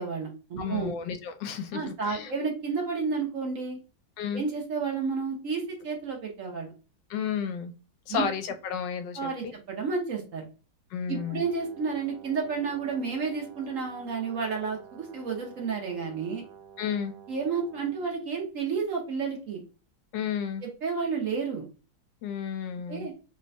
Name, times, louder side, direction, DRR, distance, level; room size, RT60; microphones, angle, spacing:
voice 1, 0.0-0.9 1.7-3.8 4.3-6.7 8.1-8.3 9.2-10.4 11.1-16.4 17.3-19.6 20.6-21.7 22.9-23.1, right 5 dB, 55° right, 0 dB, 1.0 m, -31 dB
voice 2, 0.6-2.3 4.2-4.4 7.1-7.7 8.1-9.3 10.9-11.4 16.8-17.1 20.1-20.6 22.2-23.1, left 7 dB, 80° left, 7 dB, 1.2 m, -32 dB
Brass instrument, 11.1-18.1, right 7 dB, 75° right, 1.5 m, -50 dB
3.2 x 2.2 x 3.9 m, 0.34 s
omnidirectional pair, 1.9 m